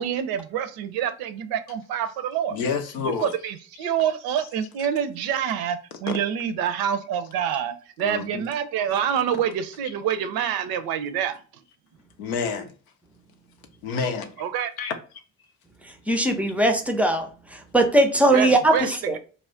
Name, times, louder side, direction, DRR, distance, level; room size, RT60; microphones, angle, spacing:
voice 1, 0.0-2.6 3.0-11.4 14.4-14.7 18.3-19.2, right 9 dB, 60° right, 0.5 m, -27 dB
voice 2, 2.5-3.3 8.0-8.4 10.4-10.6 12.2-12.7 13.8-14.3 14.8-14.9 16.1-16.2, left 5 dB, 80° left, 0.6 m, -29 dB
voice 3, 16.1-17.3 17.7-19.2, right 1 dB, 5° right, 0.4 m, -20 dB
2.3 x 2.0 x 3.6 m
hypercardioid pair, 50°, 42 cm